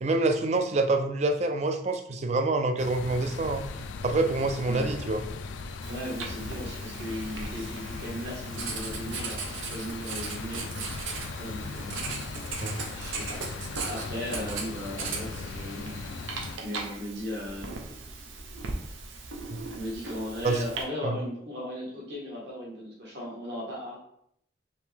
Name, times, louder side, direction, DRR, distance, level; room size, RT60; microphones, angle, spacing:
voice 1, 0.0-3.7 4.0-5.2 12.6-12.8 19.5-19.6 20.4-20.6 21.0-21.2, right 2 dB, 35° right, 7 dB, 0.4 m, -26 dB
sound 1, 2.8-16.6, left 4 dB, 75° left, 0.4 m, -38 dB
Writing, 5.8-20.8, right 4 dB, 85° right, 0.7 m, -38 dB
voice 2, 5.9-10.6 11.4-12.3 12.9-16.3 16.6-17.7 19.7-24.0, left 1 dB, 60° right, -3 dB, 1.5 m, -37 dB
4.9 x 2.9 x 3.4 m, 0.72 s
head